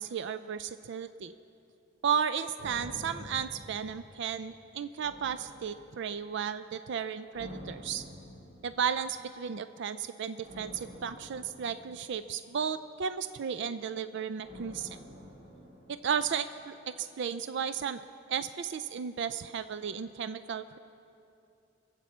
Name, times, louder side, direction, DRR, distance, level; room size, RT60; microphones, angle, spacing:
voice 1, 0.0-1.3 2.0-8.0 8.6-14.9 15.9-18.0 18.3-20.8, right 7 dB, 65° right, 12 dB, 0.4 m, -34 dB
sound 1, 2.6-4.5 5.0-6.2 7.3-9.0 10.4-12.8 14.4-16.6 16.9-17.0, equal, 35° right, 2.8 m, -49 dB
24.0 x 8.3 x 7.2 m, 2.7 s
head